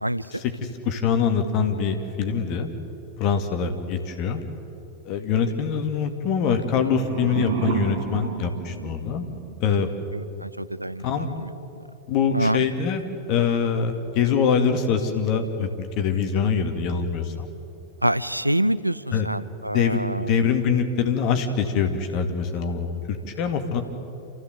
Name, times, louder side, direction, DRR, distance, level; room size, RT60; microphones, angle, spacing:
voice 1, 0.0-0.4 10.1-11.5 12.3-12.7 18.0-20.3, right 1 dB, 85° right, 16 dB, 0.5 m, -26 dB
voice 2, 0.8-2.7 3.2-4.4 5.1-9.3 9.6-9.9 10.3-10.4 11.0-11.3 12.1-13.0 13.3-17.5 19.1-19.3 19.7-23.8, left 6 dB, 40° left, 6 dB, 2.3 m, -24 dB
sound 1, 6.5-9.5, right 5 dB, 55° right, 2.7 m, -31 dB
28.5 x 15.0 x 7.9 m, 2.8 s
figure-of-eight pair, 90°, 0 cm